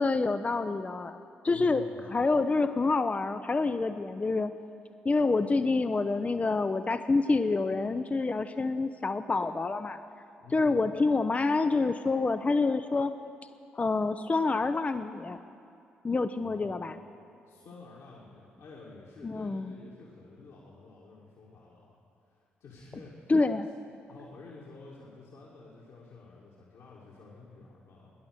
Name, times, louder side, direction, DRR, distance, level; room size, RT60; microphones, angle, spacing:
voice 1, 0.0-1.8 2.1-4.5 5.0-10.0 10.5-13.1 13.7-15.4 16.0-16.9 19.2-19.7 23.3-23.7, left 3 dB, 25° left, 10 dB, 0.6 m, -27 dB
voice 2, 1.5-2.2 10.4-10.9 16.4-16.7 17.5-21.9 22.3-23.3 24.1-28.1, left 3 dB, 60° left, -5 dB, 2.3 m, -50 dB
17.5 x 10.5 x 6.5 m, 2.5 s
figure-of-eight pair, 40°, 5 cm